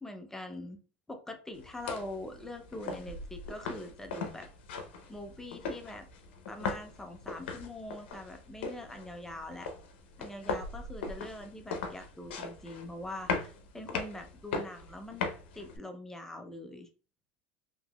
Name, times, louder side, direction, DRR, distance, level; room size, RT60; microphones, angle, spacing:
voice 1, 0.0-0.8 1.1-4.5 5.1-6.1 6.5-9.7 10.2-15.3 15.5-16.9, left 1 dB, 5° left, 5 dB, 0.5 m, -43 dB
sound 1, 1.5-15.8, left 4 dB, 85° left, 0.6 m, -40 dB
3.7 x 2.9 x 2.3 m, 0.38 s
supercardioid pair, 120°, 6 cm